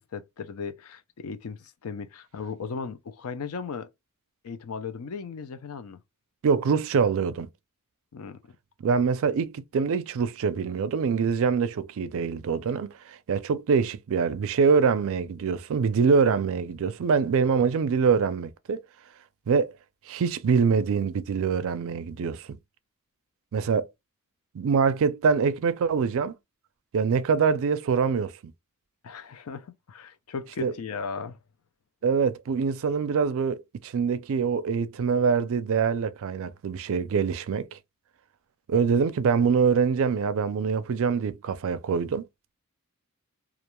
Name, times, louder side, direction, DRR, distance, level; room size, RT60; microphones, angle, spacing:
voice 1, 0.0-3.9 4.4-6.0 8.1-8.6 29.0-31.4, left 5 dB, 70° left, 0.4 m, -37 dB
voice 2, 6.4-7.5 8.8-18.8 19.5-19.7 20.1-22.5 23.5-23.9 24.5-26.3 26.9-28.5 30.6-30.7 32.0-37.8 38.7-42.2, right 5 dB, 65° right, 0.4 m, -24 dB
2.4 x 2.2 x 2.9 m
head